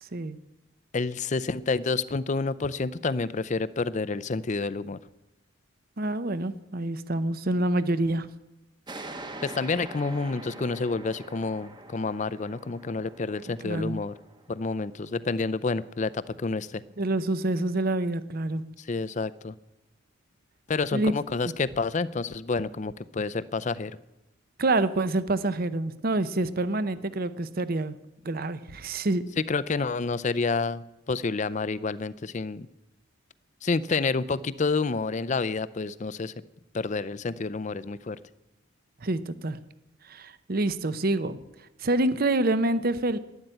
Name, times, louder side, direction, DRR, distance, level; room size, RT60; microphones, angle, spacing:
voice 1, 0.9-5.0 9.4-14.1 14.5-16.8 18.9-19.5 20.7-24.0 29.4-32.7 33.6-36.3 36.7-38.2, left 4 dB, 35° left, 16 dB, 0.4 m, -29 dB
voice 2, 6.0-8.3 13.6-14.0 17.0-18.6 20.9-21.2 24.6-28.0 28.2-29.2 39.0-39.6 40.0-41.4 41.8-43.2, right 2 dB, 45° right, 14 dB, 0.7 m, -27 dB
sound 1, 8.9-16.0, right 2 dB, 20° right, 1.1 m, -44 dB
12.0 x 11.0 x 9.0 m, 0.96 s
head